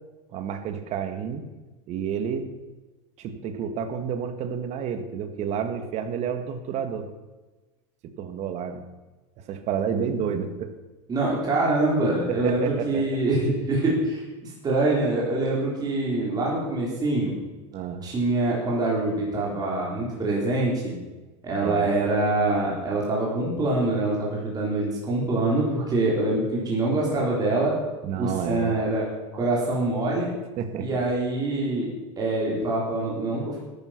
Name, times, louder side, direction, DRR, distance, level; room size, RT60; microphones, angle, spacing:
voice 1, 0.3-1.4 1.9-2.5 3.2-7.1 8.2-8.8 9.5-10.7 12.3-13.1 15.5-15.7 17.7-18.1 21.6-21.9 28.0-28.8 30.6-31.0, right 7 dB, 45° right, 8 dB, 1.8 m, -30 dB
voice 2, 11.1-17.4 18.0-21.0 21.4-27.7 28.2-30.3 30.8-31.9 32.2-33.6, right 2 dB, 25° right, -4 dB, 4.1 m, -25 dB
13.0 x 9.5 x 6.0 m, 1.2 s
supercardioid pair, 120°, 16 cm